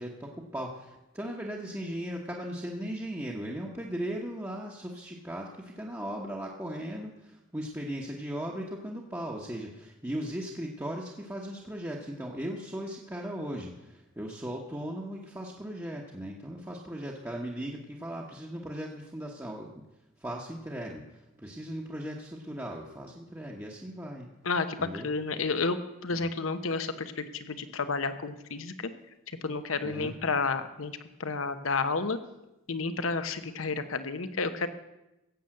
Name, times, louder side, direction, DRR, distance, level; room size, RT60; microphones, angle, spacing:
voice 1, 0.0-19.8 20.2-21.0 21.4-24.3 24.8-25.1 26.1-26.2 29.8-30.1, equal, 10° right, -3 dB, 1.1 m, -37 dB
voice 2, 24.4-25.8 26.0-28.7 29.4-30.9 31.2-32.2 32.7-34.7, left 4 dB, 80° left, 10 dB, 1.0 m, -31 dB
16.0 x 7.1 x 7.7 m, 0.96 s
head